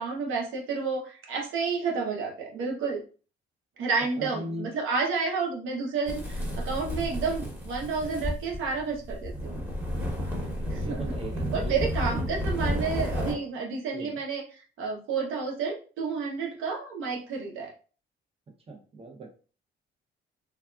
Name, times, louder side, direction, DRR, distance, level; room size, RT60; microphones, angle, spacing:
voice 1, 0.0-3.0 3.8-9.5 10.7-11.1 11.5-17.7, right 4 dB, 85° right, 1 dB, 0.8 m, -30 dB
voice 2, 4.2-4.7 10.6-11.8 12.5-12.6 13.9-14.1 18.7-19.3, right 1 dB, 30° right, 3 dB, 0.7 m, -39 dB
sound 1, 6.1-13.3, equal, 10° right, 1.1 m, -32 dB
3.3 x 2.3 x 2.4 m, 0.38 s
cardioid pair, 90°, 20 cm